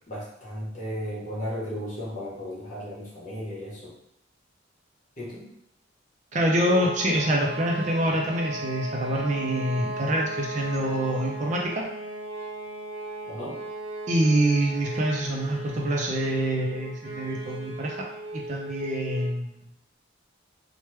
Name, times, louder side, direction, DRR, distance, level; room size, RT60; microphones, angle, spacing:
voice 1, 0.1-3.9 5.2-5.5 13.2-13.6, equal, 40° left, -6 dB, 1.0 m, -35 dB
voice 2, 6.3-11.8 14.1-18.1 18.3-19.6, right 1 dB, 40° right, 0 dB, 0.4 m, -26 dB
sound 1, 6.6-19.4, right 1 dB, 70° right, 0.7 m, -36 dB
3.0 x 2.2 x 3.2 m, 0.80 s
head